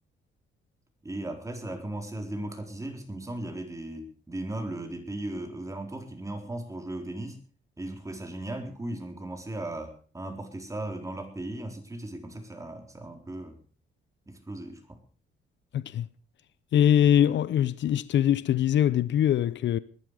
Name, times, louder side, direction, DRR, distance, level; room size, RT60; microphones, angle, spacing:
voice 1, 1.0-7.4 7.8-13.6 14.3-15.0, right 1 dB, 15° right, 4.2 m, -37 dB
voice 2, 15.7-16.1 16.7-19.8, left 10 dB, 65° left, 0.7 m, -23 dB
20.5 x 11.5 x 5.0 m
cardioid pair, 90°, 20 cm